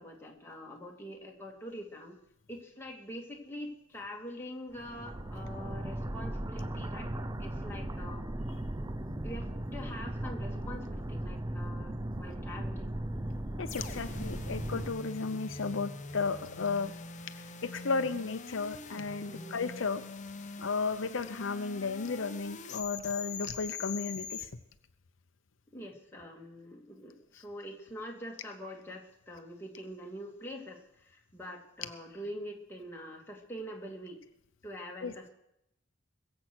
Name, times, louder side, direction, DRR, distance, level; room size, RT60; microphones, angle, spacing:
voice 1, 0.0-2.2 2.5-7.1 7.4-8.3 9.2-13.0 14.3-14.4 19.3-19.6 25.7-34.2 34.6-35.3, equal, 10° left, -1 dB, 2.3 m, -44 dB
sound 1, 4.7-14.9, right 1 dB, 20° right, 0.6 m, -37 dB
voice 2, 13.6-16.9 17.6-20.0 20.6-24.5 27.3-27.4 35.0-35.1, left 4 dB, 70° left, 9 dB, 0.7 m, -34 dB
sound 2, 13.7-24.5, left 4 dB, 40° left, 0.9 m, -44 dB
22.0 x 7.7 x 6.2 m, 0.81 s
head